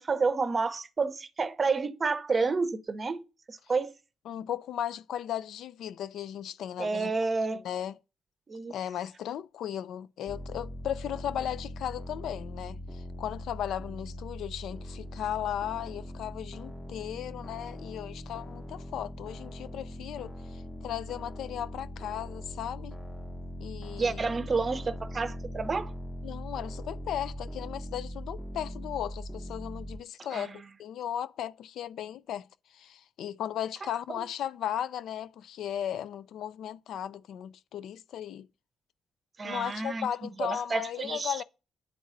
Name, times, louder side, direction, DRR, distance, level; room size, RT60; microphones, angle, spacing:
voice 1, 0.0-3.2 3.5-3.9 6.8-7.6 8.5-8.7 24.0-25.9 30.3-30.5 39.4-40.1 40.4-41.4, right 4 dB, 35° right, 0.7 m, -29 dB
voice 2, 4.3-7.1 7.5-8.0 8.7-23.0 23.6-24.3 26.2-38.5 39.4-41.4, left 10 dB, 75° left, 0.3 m, -36 dB
sound 1, 10.3-30.0, equal, 15° left, 0.8 m, -41 dB
11.0 x 4.0 x 2.5 m
cardioid pair, 90°, 0 cm